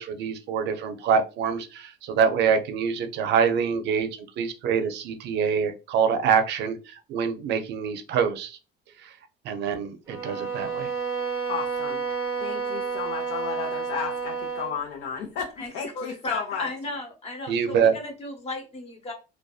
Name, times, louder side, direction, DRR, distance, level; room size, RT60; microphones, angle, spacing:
voice 1, 0.0-4.1 4.4-8.6 9.0-9.1 9.4-10.9 17.5-17.9, right 6 dB, 60° right, 8 dB, 0.5 m, -25 dB
sound 1, 10.1-14.8, right 5 dB, 15° right, 0.6 m, -30 dB
voice 2, 11.5-12.0 12.4-16.7, left 7 dB, 85° left, 0 dB, 0.6 m, -33 dB
voice 3, 15.6-19.1, left 2 dB, 30° left, 2 dB, 0.8 m, -35 dB
2.6 x 2.2 x 2.3 m, 0.30 s
cardioid pair, 150°, 20 cm